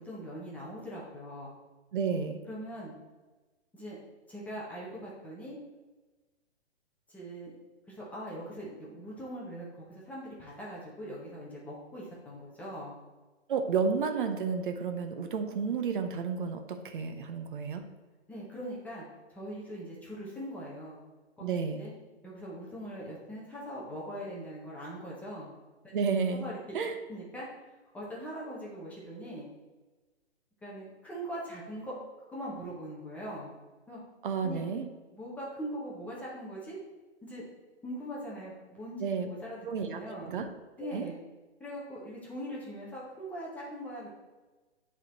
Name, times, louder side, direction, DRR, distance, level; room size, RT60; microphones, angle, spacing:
voice 1, 0.0-1.6 2.5-2.9 3.7-4.0 4.3-5.6 7.1-7.5 7.9-12.9 18.3-21.0 21.4-21.9 22.2-25.5 26.4-26.8 27.1-27.5 27.9-29.5 30.6-32.0 32.3-33.5 33.9-34.0 34.4-34.7 35.1-36.8 37.2-37.5 37.8-40.3 40.8-41.2 41.6-44.1, equal, 5° left, -6 dB, 0.6 m, -41 dB
voice 2, 1.9-2.4 13.5-17.8 21.4-21.8 25.9-26.4 26.7-27.0 34.2-34.9 39.0-39.3 39.6-40.5 40.8-41.0, right 5 dB, 50° right, 7 dB, 0.7 m, -31 dB
8.1 x 3.6 x 4.2 m, 1.2 s
hypercardioid pair, 145°, 33 cm